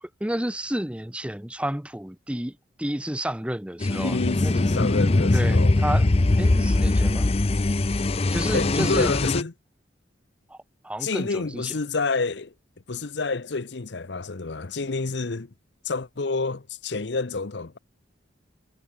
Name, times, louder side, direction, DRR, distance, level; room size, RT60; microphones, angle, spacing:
voice 1, 0.0-4.6 5.3-6.1 6.4-7.3 8.3-9.1 10.5-10.6 10.8-11.7, right 1 dB, 5° right, 0.8 m, -31 dB
sound 1, 3.8-9.4, left 2 dB, 30° left, 0.6 m, -21 dB
voice 2, 4.0-5.8 8.5-9.5 11.0-12.5 12.9-15.5 15.8-17.8, left 3 dB, 65° left, 0.8 m, -28 dB
head